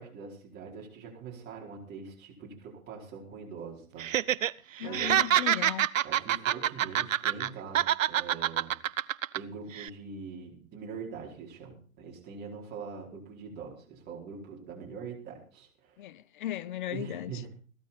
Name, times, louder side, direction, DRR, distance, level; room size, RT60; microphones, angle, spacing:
voice 1, 0.0-4.1 4.8-5.3 6.0-8.8 9.3-16.0 16.9-17.5, right 5 dB, 25° right, 4.7 m, -43 dB
Laughter, 4.0-4.5 4.8-7.5 7.7-9.4 9.7-9.9, right 11 dB, 65° right, 0.7 m, -26 dB
voice 2, 4.8-5.9 16.0-17.3, left 13 dB, 35° left, 0.7 m, -36 dB
16.0 x 12.5 x 4.3 m
hypercardioid pair, 135°, 43 cm